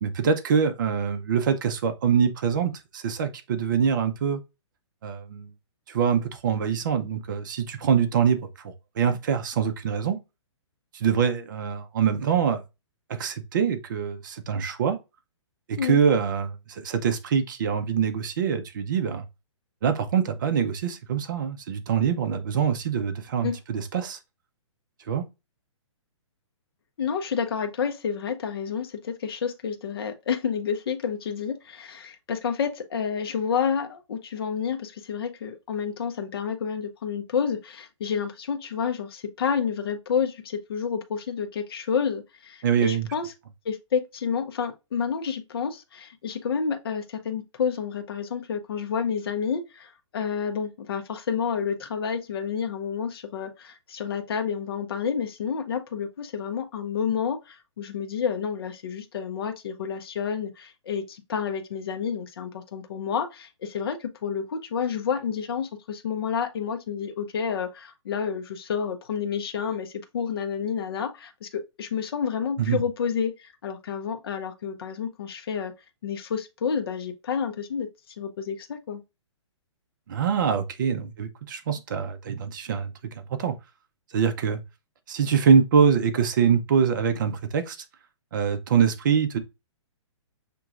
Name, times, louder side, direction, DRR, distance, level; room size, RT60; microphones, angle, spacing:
voice 1, 0.0-4.4 5.0-5.5 5.9-10.2 10.9-12.6 13.1-15.0 15.7-19.3 19.8-24.2 25.1-25.2 42.6-43.1 72.6-72.8 80.1-83.5 84.1-84.6 85.1-87.8 88.3-89.4, right 7 dB, 40° right, 0.6 m, -24 dB
voice 2, 27.0-43.3 43.7-75.7 76.0-77.9 78.2-79.0, left 7 dB, 50° left, 0.7 m, -29 dB
6.0 x 3.0 x 2.4 m
hypercardioid pair, 170°, 16 cm